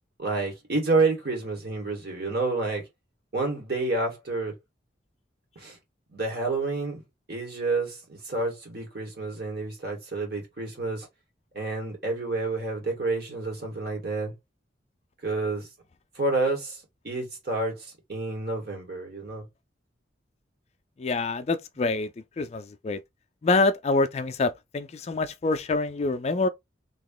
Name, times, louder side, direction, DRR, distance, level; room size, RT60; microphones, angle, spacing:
voice 1, 0.2-2.8 3.3-4.5 5.6-5.8 6.1-7.0 7.3-11.1 11.5-14.3 15.2-15.7 16.2-19.5, right 3 dB, 55° right, 1.9 m, -29 dB
voice 2, 21.0-22.1 22.4-23.0 23.4-26.5, left 3 dB, 35° left, 0.3 m, -26 dB
3.0 x 2.8 x 3.8 m
head